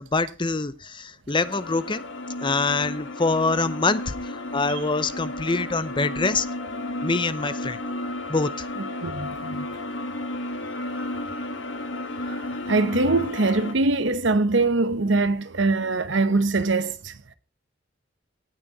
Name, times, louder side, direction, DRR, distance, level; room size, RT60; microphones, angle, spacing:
voice 1, 0.0-2.0 2.4-6.5 7.0-7.8 8.3-8.5, left 3 dB, 25° left, 0.7 m, -25 dB
sound 1, 1.4-13.7, left 1 dB, 70° left, 1.4 m, -33 dB
voice 2, 8.8-9.7 12.3-17.1, right 3 dB, 70° right, 1.0 m, -23 dB
18.0 x 6.3 x 4.1 m
head